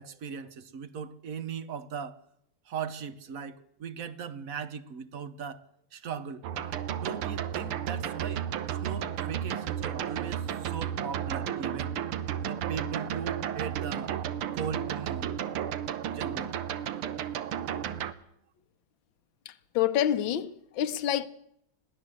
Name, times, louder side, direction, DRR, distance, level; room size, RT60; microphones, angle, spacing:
voice 1, 0.0-2.2 2.7-5.6 5.9-6.4 7.0-8.4 8.8-11.9 12.5-14.1 14.5-15.4 16.1-16.5, right 7 dB, 50° right, 1.2 m, -38 dB
sound 1, 6.4-18.1, right 9 dB, 85° right, 1.9 m, -33 dB
voice 2, 19.7-21.3, left 11 dB, 65° left, 1.7 m, -27 dB
22.0 x 15.5 x 7.8 m
omnidirectional pair, 2.4 m